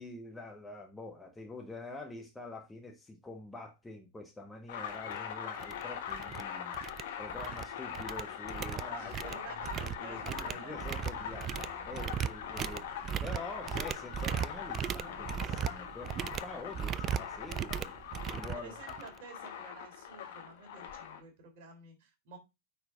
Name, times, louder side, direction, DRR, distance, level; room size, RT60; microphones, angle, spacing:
voice 1, 0.0-6.9 7.2-9.3 9.8-17.9 18.3-18.8, left 2 dB, 10° left, 1.5 m, -46 dB
sound 1, 4.7-21.2, left 8 dB, 55° left, 1.5 m, -42 dB
sound 2, 5.1-5.2 5.6-5.8 6.1-6.4 6.7-7.7 7.9-19.2, right 9 dB, 30° right, 0.3 m, -37 dB
voice 2, 8.9-11.1 18.5-22.4, right 5 dB, 50° right, 3.5 m, -51 dB
9.4 x 4.7 x 3.8 m
figure-of-eight pair, 90°, 0 cm